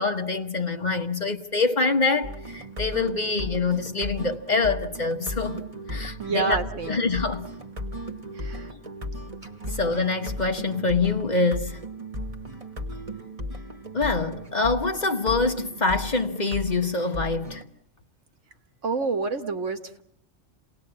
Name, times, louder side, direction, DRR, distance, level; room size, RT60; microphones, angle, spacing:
voice 1, 0.0-5.6 5.9-6.6 6.9-7.4 9.7-11.8 13.9-17.6, left 3 dB, 35° left, 1.1 m, -25 dB
sound 1, 2.2-17.6, equal, 30° right, 1.5 m, -36 dB
voice 2, 6.2-7.0 8.4-8.7 9.7-9.8 18.8-20.0, right 4 dB, 75° right, 1.9 m, -28 dB
28.5 x 19.0 x 8.7 m
omnidirectional pair, 1.3 m